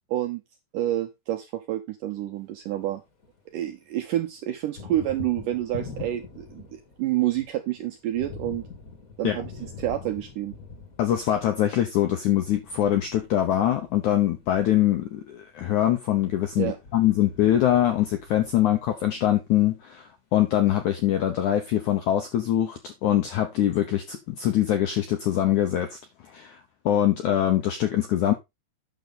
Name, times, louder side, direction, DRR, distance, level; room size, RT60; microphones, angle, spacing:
voice 1, 0.1-0.4 0.7-3.0 3.5-8.6 9.2-10.6 16.6-16.8, right 13 dB, 80° right, 1.9 m, -28 dB
Thunder, 2.5-3.7 4.0-19.2, left 4 dB, 40° left, 1.2 m, -44 dB
voice 2, 11.0-26.0 26.3-26.6 26.9-28.3, left 12 dB, 75° left, 1.8 m, -23 dB
9.2 x 6.7 x 3.9 m
omnidirectional pair, 4.7 m